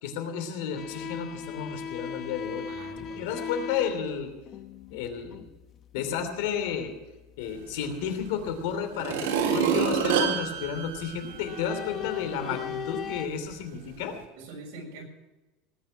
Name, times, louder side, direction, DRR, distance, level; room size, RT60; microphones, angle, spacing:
voice 1, 0.0-2.7 3.0-4.3 4.9-5.4 5.9-6.9 7.4-14.1, left 7 dB, 70° left, 8 dB, 2.9 m, -32 dB
sound 1, 0.8-6.9 7.1-8.7 10.6-10.9 11.2-13.3, left 7 dB, 30° left, 0.9 m, -38 dB
voice 2, 2.7-3.3 12.2-12.5 14.4-15.0, right 2 dB, 65° right, 1 dB, 6.6 m, -44 dB
sound 2, 8.2-8.3 8.9-11.8 12.3-12.4, right 7 dB, 80° right, 3.4 m, -27 dB
19.5 x 9.9 x 6.4 m, 1.1 s
supercardioid pair, 160°, 0 cm